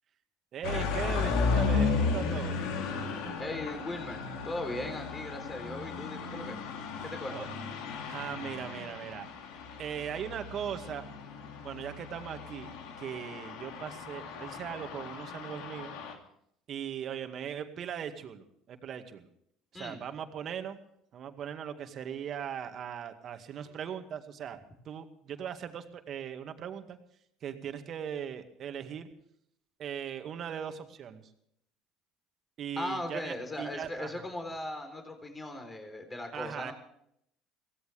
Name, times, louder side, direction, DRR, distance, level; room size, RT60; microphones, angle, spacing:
voice 1, 0.5-2.6 7.3-7.5 8.0-9.3 9.8-11.0 11.6-15.9 16.7-19.3 19.7-20.8 21.1-24.6 24.9-27.0 27.4-29.1 29.8-31.2 32.6-34.3 36.3-36.7, right 8 dB, 50° right, 7 dB, 2.1 m, -39 dB
sound 1, 0.6-16.1, left 4 dB, 75° left, 2.4 m, -34 dB
voice 2, 3.4-6.6 7.0-7.5 19.7-20.0 32.8-36.7, left 1 dB, 20° left, 5 dB, 3.7 m, -38 dB
23.5 x 17.0 x 3.5 m, 0.71 s
hypercardioid pair, 75°, 0 cm